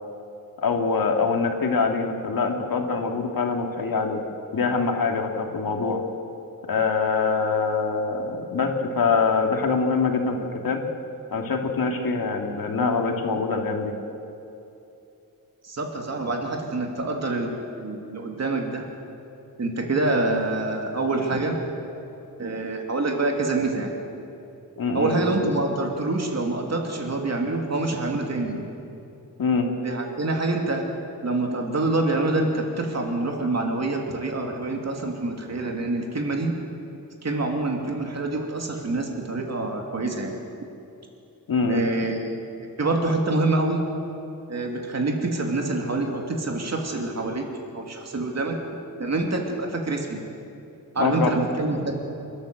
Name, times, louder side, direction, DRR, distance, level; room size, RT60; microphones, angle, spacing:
voice 1, 0.6-4.2 4.5-6.0 6.7-10.4 10.6-10.8 11.3-13.9 24.8-25.5 29.4-29.7 41.5-41.8 51.0-51.3, left 4 dB, 70° left, 3 dB, 2.4 m, -24 dB
voice 2, 15.6-18.9 19.6-21.6 22.4-23.9 24.9-28.7 29.8-30.9 31.2-36.5 37.2-40.4 41.7-42.4 42.8-43.8 44.5-47.4 47.7-48.6 49.0-50.2 50.9-52.0, right 2 dB, 45° right, 2 dB, 2.8 m, -26 dB
27.5 x 13.0 x 7.8 m, 2.8 s
wide cardioid pair, 160°, 36 cm